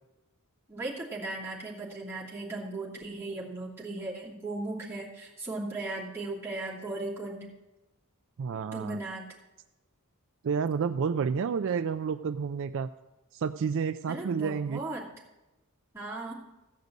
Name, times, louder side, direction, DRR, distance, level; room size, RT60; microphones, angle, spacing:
voice 1, 0.7-7.5 8.7-9.3 14.1-15.1 15.9-16.3, right 2 dB, 10° right, -6 dB, 2.7 m, -37 dB
voice 2, 8.4-9.0 10.4-12.9 13.3-14.8, right 6 dB, 60° right, 11 dB, 0.4 m, -30 dB
15.0 x 5.2 x 8.2 m, 1.0 s
head